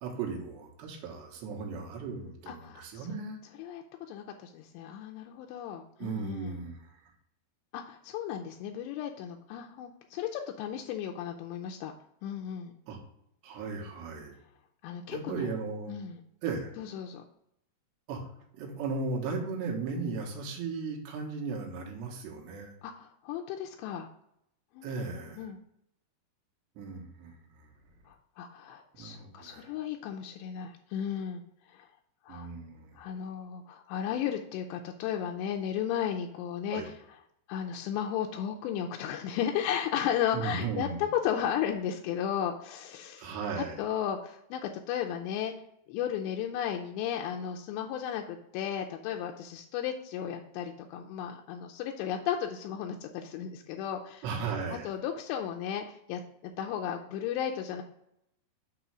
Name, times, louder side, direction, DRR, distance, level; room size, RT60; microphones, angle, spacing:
voice 1, 0.0-3.4 6.0-7.1 12.9-13.0 13.4-14.3 15.1-16.0 16.4-16.8 18.1-18.2 18.5-22.7 24.8-25.5 26.8-27.7 29.0-29.7 32.3-33.0 36.7-36.9 40.3-41.0 43.2-43.8 54.2-54.9, right 4 dB, 80° right, -1 dB, 3.5 m, -36 dB
voice 2, 2.5-3.2 3.6-3.8 4.1-6.6 7.7-11.9 12.2-12.7 14.8-15.5 15.9-16.2 16.8-17.2 22.8-24.1 24.7-24.9 25.1-25.6 28.1-31.4 31.7-31.9 32.3-32.5 33.0-36.9 37.5-43.3 43.6-45.5 45.9-54.2 54.7-57.8, left 9 dB, 85° left, 2 dB, 2.8 m, -34 dB
7.7 x 3.1 x 6.0 m, 0.75 s
omnidirectional pair, 5.0 m